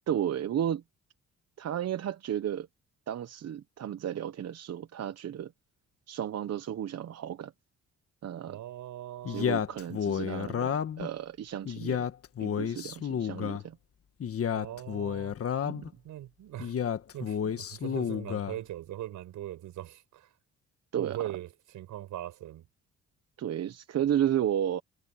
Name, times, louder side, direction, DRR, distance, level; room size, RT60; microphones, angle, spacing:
voice 1, 0.1-0.8 1.6-2.7 3.1-5.5 6.1-7.5 8.2-8.6 9.3-12.1 12.4-13.8 15.6-15.9 20.9-21.3 23.4-24.8, right 10 dB, 60° right, 1.1 m, -33 dB
voice 2, 8.5-9.6 14.5-15.3 16.0-16.7 17.1-20.3 20.9-22.7, right 13 dB, 80° right, 6.0 m, -40 dB
Male speech man speaking, 9.2-11.1 11.6-13.6 14.2-15.9 16.6-18.6, left 8 dB, 50° left, 1.5 m, -31 dB
cardioid pair, 90°, 30 cm